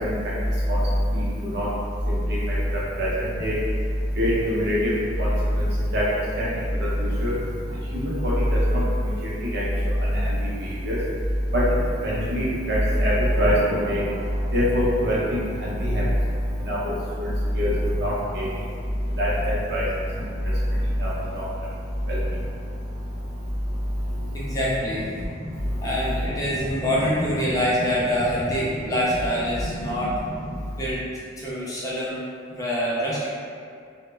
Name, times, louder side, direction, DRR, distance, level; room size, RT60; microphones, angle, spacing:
voice 1, 4.2-4.9 5.2-5.3 5.9-6.0 6.4-6.5 7.2-7.3 7.9-8.1 8.5-8.8 9.5-9.6 10.8-11.0 11.5-11.6 12.0-13.1 13.4-13.5 13.8-14.0 14.5-15.7 16.7-16.8 17.6-17.7 18.0-18.4 19.2-19.8, equal, 60° right, -6 dB, 0.6 m, -23 dB
voice 2, 24.3-25.1 25.8-30.1 30.8-31.0 31.4-32.2 32.6-33.3, equal, 20° left, -7 dB, 0.4 m, -25 dB
2.1 x 2.0 x 3.2 m, 2.3 s
head